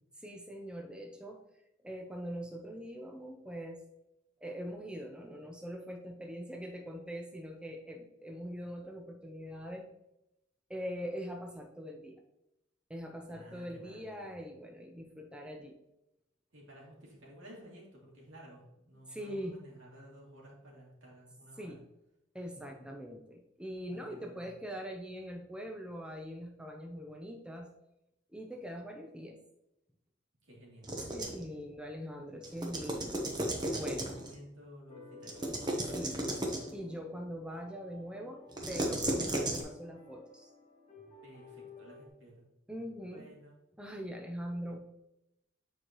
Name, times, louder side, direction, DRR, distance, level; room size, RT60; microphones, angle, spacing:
voice 1, 0.2-1.4 1.8-3.8 4.4-9.9 10.7-12.2 12.9-15.8 19.1-19.6 21.6-21.8 22.3-27.7 28.3-29.4 31.1-34.1 35.8-36.2 36.7-40.5 42.7-43.3 43.8-44.8, equal, 5° right, 2 dB, 0.6 m, -42 dB
voice 2, 13.3-14.3 16.5-21.7 22.5-22.9 23.9-24.4 30.5-31.0 33.7-35.6 41.2-42.4 43.1-43.5, equal, 85° right, -4 dB, 2.6 m, -54 dB
sound 1, 30.8-31.5 32.4-34.3 35.2-36.7 38.5-39.6, right 1 dB, 20° right, 0.9 m, -34 dB
sound 2, 34.9-42.1, left 2 dB, 35° left, 1.1 m, -53 dB
9.0 x 4.7 x 3.0 m, 0.86 s
head